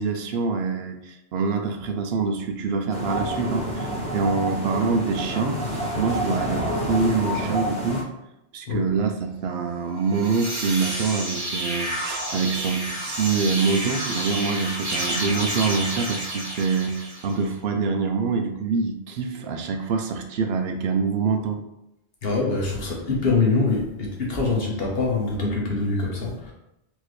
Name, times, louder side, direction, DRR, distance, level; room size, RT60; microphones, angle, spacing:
voice 1, 0.0-8.0 8.5-21.6, right 4 dB, 65° right, 5 dB, 0.7 m, -25 dB
sound 1, 2.9-8.0, equal, 5° left, 1.0 m, -28 dB
sound 2, 10.0-17.4, right 1 dB, 15° right, 0.8 m, -30 dB
voice 2, 22.2-26.5, left 3 dB, 55° left, -2 dB, 1.1 m, -24 dB
4.5 x 2.9 x 3.1 m, 0.86 s
omnidirectional pair, 1.2 m